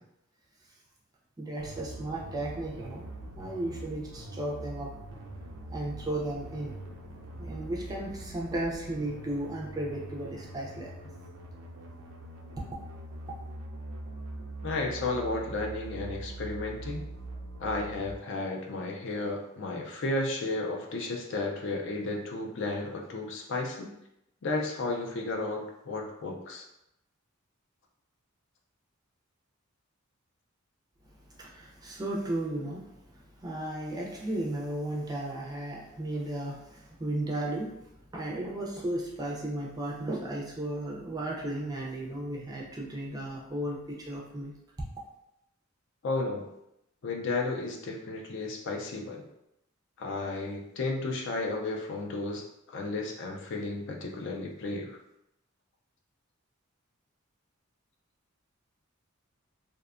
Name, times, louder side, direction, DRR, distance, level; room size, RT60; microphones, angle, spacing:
voice 1, 1.4-3.1 3.4-4.9 5.7-6.8 7.4-10.9 31.4-32.9 33.4-37.7 38.1-44.5, right 1 dB, 20° right, -3 dB, 0.4 m, -34 dB
sound 1, 1.6-18.1, right 2 dB, 80° right, 0.4 m, -43 dB
voice 2, 14.6-17.0 17.6-23.9 24.4-26.7 46.0-46.5 47.0-49.2 50.0-55.0, left 2 dB, 60° left, 1 dB, 0.4 m, -33 dB
2.6 x 2.1 x 2.4 m, 0.83 s
head